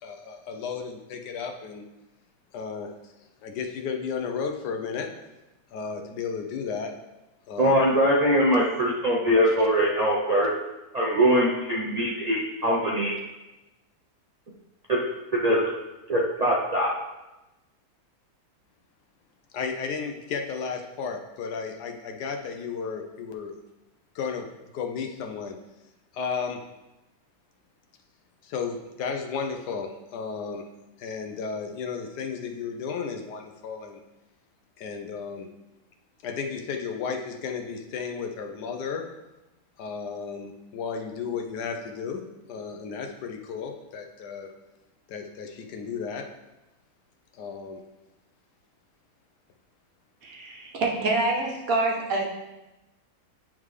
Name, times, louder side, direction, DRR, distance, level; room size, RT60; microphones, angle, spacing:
voice 1, 0.0-1.8 2.5-2.9 3.4-5.1 5.7-6.9 7.5-7.8 9.5-9.6 19.5-23.5 24.1-24.5 24.7-25.6 26.1-26.6 28.4-30.6 31.0-34.0 34.8-35.5 36.2-39.0 39.8-42.2 42.5-44.5 45.1-46.2 47.3-47.8, left 5 dB, 75° left, 3 dB, 1.2 m, -33 dB
voice 2, 7.6-10.5 10.9-13.1 14.9-15.0 15.4-15.6 16.1-16.9, equal, 80° right, -4 dB, 0.3 m, -22 dB
voice 3, 50.2-52.3, right 2 dB, 60° right, 0 dB, 1.2 m, -26 dB
8.9 x 3.6 x 3.2 m, 1.0 s
omnidirectional pair, 1.8 m